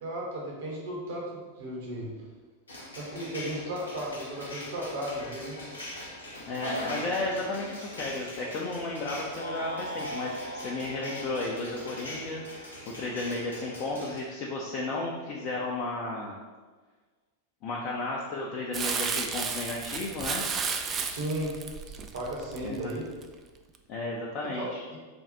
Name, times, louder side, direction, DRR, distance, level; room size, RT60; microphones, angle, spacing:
voice 1, 0.0-2.1 2.9-5.6 21.0-21.5 21.9-23.1 24.5-25.0, right 1 dB, 60° right, -3 dB, 1.2 m, -35 dB
sound 1, 2.7-14.2, left 1 dB, 75° left, 0.8 m, -41 dB
voice 2, 6.5-16.4 17.6-20.5 22.6-22.9 23.9-24.8, left 2 dB, 40° left, -4 dB, 0.5 m, -33 dB
sound 2, 9.4-13.7, right 1 dB, 85° right, 0.6 m, -41 dB
Crumpling crinkling, 18.7-23.3 23.7-23.8, right 5 dB, 25° right, 0.3 m, -33 dB
3.5 x 2.4 x 4.0 m, 1.3 s
figure-of-eight pair, 90°, 0 cm